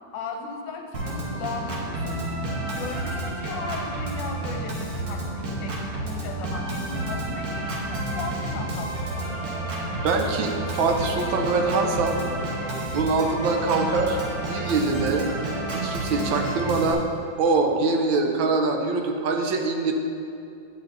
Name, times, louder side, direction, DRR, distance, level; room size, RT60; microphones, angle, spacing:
voice 1, 0.1-2.2 2.6-9.3, left 4 dB, 70° left, 2 dB, 1.3 m, -36 dB
Organ, 0.9-16.9, right 2 dB, 55° right, 1.4 m, -30 dB
voice 2, 10.0-12.2 12.9-14.2 14.5-15.3 15.7-17.0 17.4-19.9, right 3 dB, 80° right, 4 dB, 1.4 m, -23 dB
8.5 x 8.2 x 2.6 m, 2.7 s
omnidirectional pair, 2.2 m